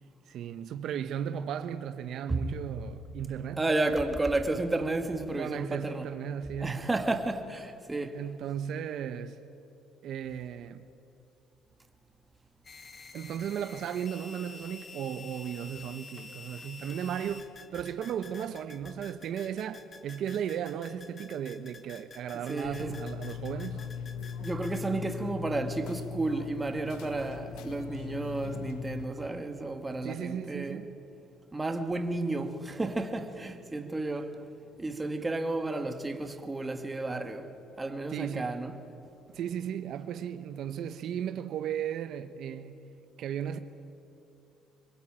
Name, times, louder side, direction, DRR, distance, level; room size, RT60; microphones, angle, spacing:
voice 1, 0.3-3.6 5.4-6.9 8.1-9.4 10.0-10.9 13.1-17.5 17.7-23.9 30.0-31.0 38.1-38.5 39.3-42.9 43.2-43.6, right 9 dB, 65° right, 0.9 m, -35 dB
voice 2, 3.6-6.1 6.6-8.2 22.5-22.9 24.4-30.8 31.5-34.4 34.8-37.5 37.8-38.7, right 2 dB, 15° right, 2.0 m, -32 dB
sound 1, 12.6-24.8, left 5 dB, 35° left, 1.9 m, -49 dB
sound 2, 22.6-29.1, left 7 dB, 90° left, 1.2 m, -39 dB
26.0 x 21.5 x 8.9 m
cardioid pair, 120°, 0 cm